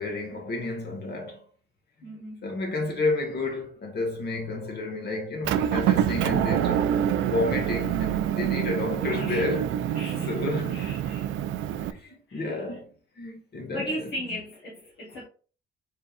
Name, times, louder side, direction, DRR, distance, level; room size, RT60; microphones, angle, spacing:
voice 1, 0.0-1.4 2.4-9.7 10.1-11.1 11.9-13.9, left 3 dB, 55° left, 1.8 m, -31 dB
voice 2, 2.0-2.5 8.9-9.5 9.9-10.4 10.7-11.3 12.3-12.5 13.7-15.3, equal, 70° left, 1.5 m, -37 dB
Motor vehicle (road) / Engine, 5.4-11.9, right 10 dB, 75° right, 0.4 m, -26 dB
4.3 x 3.6 x 2.5 m
cardioid pair, 90°, 20 cm